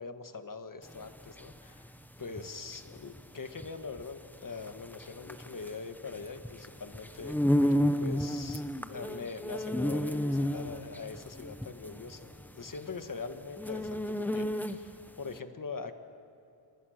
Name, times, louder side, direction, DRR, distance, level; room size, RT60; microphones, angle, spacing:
voice 1, 0.0-1.9 2.2-7.4 8.0-8.6 8.9-15.9, left 4 dB, 40° left, 8 dB, 1.6 m, -42 dB
sound 1, 0.9-15.1, equal, 5° left, 0.9 m, -32 dB
26.5 x 21.5 x 6.6 m, 2.7 s
wide cardioid pair, 95°, 48 cm